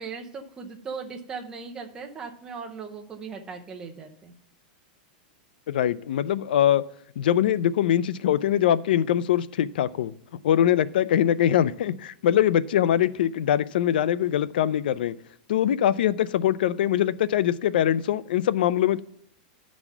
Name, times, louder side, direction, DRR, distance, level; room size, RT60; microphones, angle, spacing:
voice 1, 0.0-4.3, right 5 dB, 15° right, 3 dB, 0.7 m, -38 dB
voice 2, 5.7-6.8 7.2-10.1 10.4-15.1 15.5-19.0, left 11 dB, 75° left, 18 dB, 0.4 m, -22 dB
9.9 x 4.1 x 5.9 m, 0.71 s
supercardioid pair, 170°, 5 cm